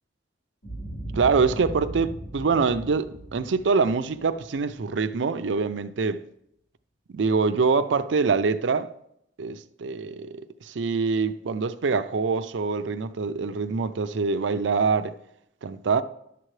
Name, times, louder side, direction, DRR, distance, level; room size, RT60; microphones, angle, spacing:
Boom, 0.6-4.9, right 1 dB, 50° left, 3.5 m, -38 dB
voice 1, 1.1-6.2 7.1-8.9 9.4-15.1 15.6-16.0, right 4 dB, 80° right, 0.5 m, -25 dB
11.0 x 7.7 x 3.2 m
head